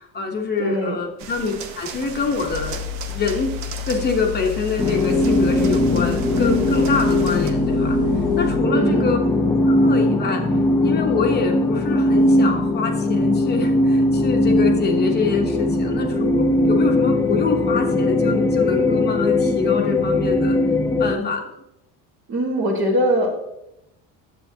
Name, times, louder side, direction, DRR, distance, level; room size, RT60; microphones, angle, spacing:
voice 1, 0.0-2.8 3.1-3.5 3.8-8.0 8.3-9.2 9.5-10.4 10.8-20.6 21.0-21.4, left 4 dB, 30° left, 2 dB, 1.0 m, -25 dB
voice 2, 0.6-1.0 8.7-9.1 22.3-23.3, equal, 35° right, -5 dB, 1.4 m, -21 dB
sound 1, 1.2-7.5, right 6 dB, 55° right, 0.9 m, -36 dB
sound 2, 2.5-8.6, left 12 dB, 10° right, 1.2 m, -31 dB
sound 3, 4.8-21.1, left 1 dB, 10° left, 0.5 m, -19 dB
10.5 x 7.5 x 2.8 m, 0.83 s
cardioid pair, 155°, 33 cm